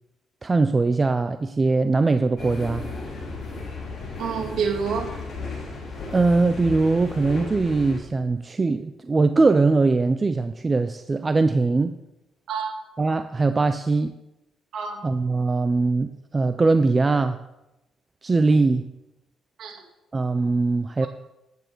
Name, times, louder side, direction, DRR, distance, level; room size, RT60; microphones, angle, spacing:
voice 1, 0.4-2.9 6.1-12.0 13.0-14.1 15.0-17.4 18.2-18.9 20.1-21.1, right 3 dB, 25° right, 10 dB, 0.5 m, -21 dB
sound 1, 2.4-8.0, left 3 dB, 50° left, 3.4 m, -34 dB
voice 2, 4.2-5.1 12.5-12.7 14.7-15.1 19.6-19.8, right 6 dB, 75° right, 2 dB, 2.1 m, -28 dB
9.9 x 9.3 x 4.6 m, 0.94 s
cardioid pair, 90°, 0 cm